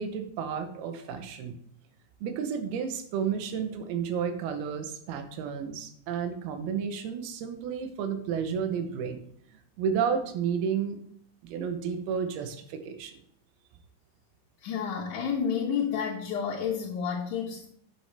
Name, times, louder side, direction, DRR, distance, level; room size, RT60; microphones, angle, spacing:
voice 1, 0.0-1.6 2.2-9.2 9.5-11.0 11.4-13.2, right 7 dB, 75° right, 7 dB, 2.4 m, -32 dB
voice 2, 14.6-17.7, left 7 dB, 65° left, -9 dB, 2.1 m, -30 dB
8.4 x 6.2 x 3.3 m, 0.67 s
omnidirectional pair, 5.1 m